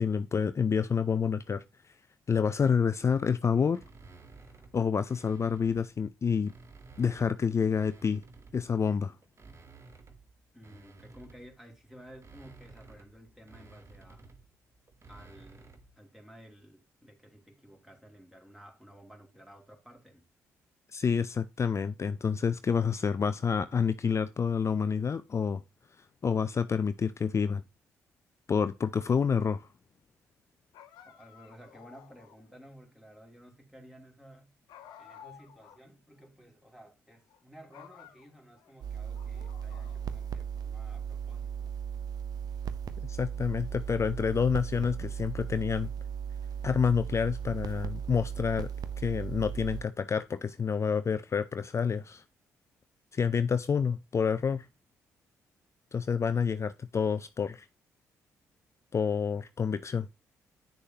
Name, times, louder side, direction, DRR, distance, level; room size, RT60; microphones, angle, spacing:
voice 1, 0.0-1.6 2.3-3.8 4.7-6.5 7.0-8.2 8.5-9.2 20.9-25.6 26.2-27.6 28.5-29.7 43.1-45.9 46.6-48.7 49.0-52.2 53.1-54.7 55.9-57.7 58.9-60.1, left 6 dB, 40° left, 0.4 m, -28 dB
sound 1, 3.7-5.9 6.3-8.8 9.2-16.0, right 3 dB, 35° right, 1.3 m, -54 dB
voice 2, 10.5-14.3 15.0-20.3 31.0-34.5 35.0-41.7, equal, 5° right, 2.7 m, -54 dB
sound 2, 30.7-32.5 34.7-35.9 36.2-36.3 37.1-37.4 37.7-38.7 39.1-40.3, left 10 dB, 70° left, 0.7 m, -54 dB
sound 3, 38.8-49.8, right 8 dB, 55° right, 0.7 m, -37 dB
9.2 x 6.4 x 2.8 m
hypercardioid pair, 45°, 8 cm